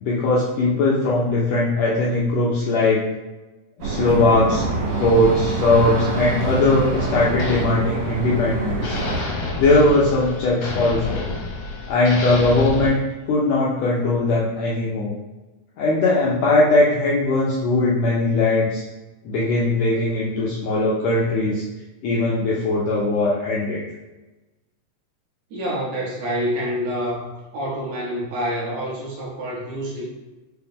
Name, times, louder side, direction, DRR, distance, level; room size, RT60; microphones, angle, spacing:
voice 1, 0.0-3.0 3.8-4.7 5.0-9.0 9.6-11.2 11.9-15.1 15.8-18.8 19.2-21.6 22.0-23.8, left 2 dB, 90° left, -5 dB, 1.5 m, -20 dB
sound 1, 3.8-9.2, right 2 dB, 90° right, 2.4 m, -25 dB
sound 2, 4.9-8.5 8.8-12.9, left 2 dB, 70° left, 1.5 m, -31 dB
voice 2, 25.5-27.3 27.5-30.0, equal, 70° right, -5 dB, 2.1 m, -27 dB
5.6 x 2.0 x 3.4 m, 1.1 s
omnidirectional pair, 3.7 m